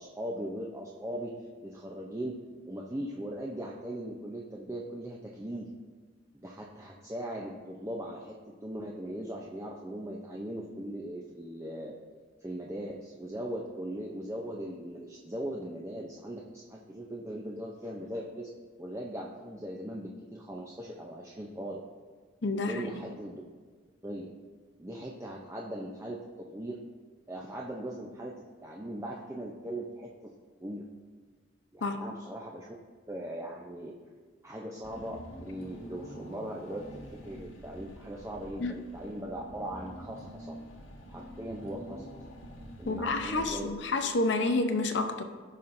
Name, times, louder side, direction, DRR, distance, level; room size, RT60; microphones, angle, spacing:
voice 1, 0.0-1.4 1.6-2.4 2.7-5.7 6.3-11.9 12.4-18.5 18.8-21.8 22.7-23.4 24.0-24.3 24.8-26.8 27.3-30.3 30.6-30.8 31.7-32.7 33.1-33.9 34.4-40.5 41.1-42.1 42.8-43.7, right 1 dB, 15° right, -3 dB, 0.5 m, -39 dB
voice 2, 22.4-22.8 31.8-32.0 38.6-38.8 42.9-45.2, left 3 dB, 65° left, 7 dB, 0.6 m, -29 dB
Car / Engine, 34.8-44.0, equal, 85° left, 1.7 m, -47 dB
15.0 x 5.6 x 2.6 m, 1.5 s
head